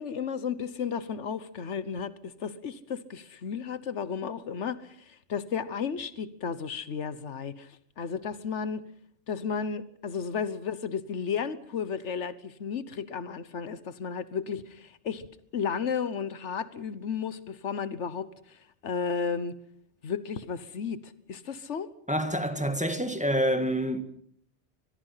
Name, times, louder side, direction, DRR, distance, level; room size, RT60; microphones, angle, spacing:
voice 1, 0.0-7.7 8.0-8.8 9.3-15.3 15.5-18.6 18.8-19.6 20.0-21.9, left 6 dB, 90° left, 1.4 m, -33 dB
voice 2, 22.1-24.0, equal, 5° right, 1.9 m, -27 dB
24.5 x 21.5 x 5.8 m
omnidirectional pair, 1.2 m